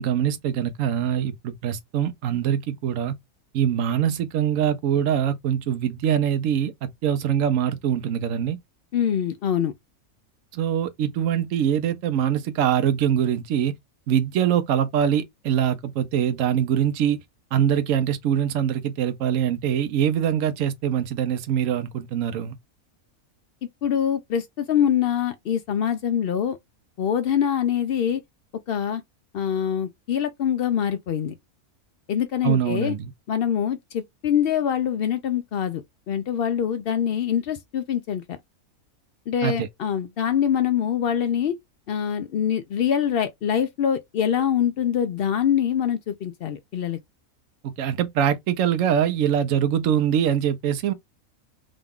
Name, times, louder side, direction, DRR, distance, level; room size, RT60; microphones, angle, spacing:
voice 1, 0.0-3.2 3.5-8.6 10.5-13.7 14.1-17.2 17.5-22.6 32.4-33.1 39.4-39.7 47.6-50.9, right 9 dB, 70° right, 1.0 m, -23 dB
voice 2, 8.9-9.7 23.8-26.6 27.0-28.2 28.7-29.0 29.3-31.3 32.1-32.9 33.3-38.4 39.3-41.6 41.9-47.0, left 9 dB, 75° left, 0.5 m, -24 dB
3.7 x 2.3 x 3.5 m
omnidirectional pair, 1.5 m